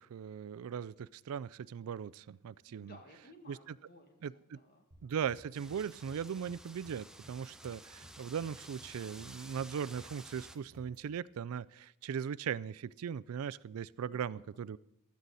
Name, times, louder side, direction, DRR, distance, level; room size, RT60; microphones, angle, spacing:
voice 1, 0.0-3.0 3.5-3.6 4.2-4.6 5.0-14.8, right 7 dB, 80° right, 20 dB, 0.4 m, -39 dB
voice 2, 2.7-4.9 14.1-14.4, left 1 dB, 45° left, 4 dB, 2.0 m, -58 dB
sound 1, 4.9-11.1, equal, 40° right, 4.1 m, -58 dB
Wind, 5.5-10.6, right 1 dB, 5° right, 0.6 m, -53 dB
15.5 x 11.5 x 4.1 m, 0.81 s
head